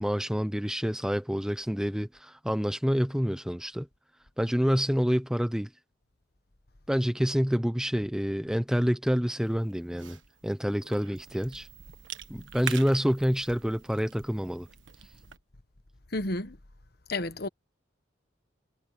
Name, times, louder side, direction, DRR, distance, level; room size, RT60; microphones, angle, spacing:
voice 1, 0.0-3.9 4.4-5.7 6.9-11.7 12.3-14.7, equal, 5° right, 0.9 m, -27 dB
Cough / Chewing mastication, 9.4-15.4, right 8 dB, 75° right, 1.5 m, -44 dB
voice 2, 16.1-16.6 17.1-17.5, left 2 dB, 50° left, 1.2 m, -31 dB
head